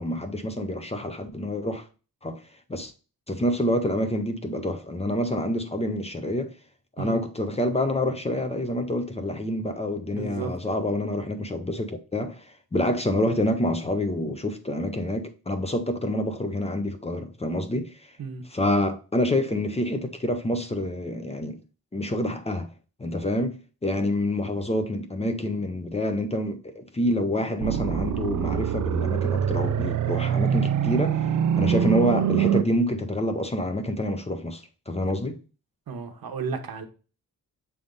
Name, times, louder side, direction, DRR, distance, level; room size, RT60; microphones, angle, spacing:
voice 1, 0.0-1.9 2.2-2.4 2.7-2.9 3.3-6.5 7.0-17.9 18.5-21.6 21.9-22.7 23.0-31.3 31.6-35.4, left 1 dB, 20° left, 0.6 m, -27 dB
voice 2, 10.1-10.5 18.2-18.4 35.9-36.9, right 5 dB, 80° right, 1.1 m, -33 dB
sound 1, 27.6-32.6, right 9 dB, 60° right, 0.5 m, -24 dB
7.0 x 3.5 x 3.8 m
wide cardioid pair, 175°, 35 cm